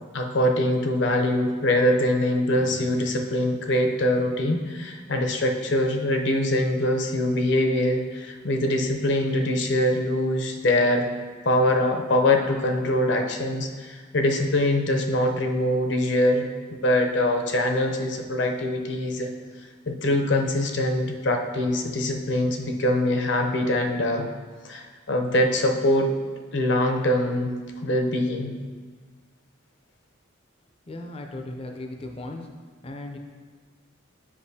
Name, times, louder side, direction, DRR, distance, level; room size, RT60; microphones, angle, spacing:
voice 1, 0.1-11.1 11.4-19.3 19.9-24.3 24.6-26.1 26.5-27.5 27.8-28.5, left 1 dB, 65° left, 3 dB, 0.7 m, -23 dB
voice 2, 30.9-32.4 32.8-33.2, left 2 dB, 30° left, 4 dB, 0.5 m, -36 dB
8.4 x 5.3 x 2.7 m, 1.4 s
head